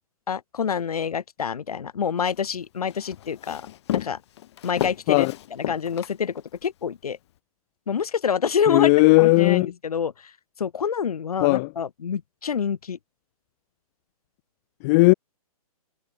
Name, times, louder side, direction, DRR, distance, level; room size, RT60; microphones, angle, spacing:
voice 1, 0.3-3.7 3.9-4.2 4.6-7.2 7.9-8.9 9.2-10.3 10.6-13.0, left 7 dB, 75° left, 4.9 m, -27 dB
Walk footsteps, 2.3-6.7, left 13 dB, 45° left, 3.9 m, -33 dB
voice 2, 8.7-9.7 11.4-11.7 14.8-15.1, left 26 dB, 25° left, 0.9 m, -17 dB
hypercardioid pair, 150°, 19 cm